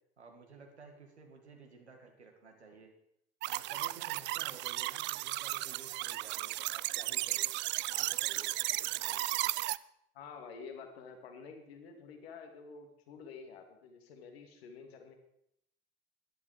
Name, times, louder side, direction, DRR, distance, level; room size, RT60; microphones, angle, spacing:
voice 1, 0.2-3.0 3.5-7.5 7.9-9.3, right 4 dB, 80° right, 3 dB, 2.1 m, -54 dB
sound 1, 3.4-9.8, right 18 dB, 35° right, 0.4 m, -35 dB
voice 2, 10.1-15.1, left 5 dB, 65° left, 5 dB, 2.3 m, -49 dB
14.0 x 11.5 x 4.9 m, 0.75 s
figure-of-eight pair, 65°, 33 cm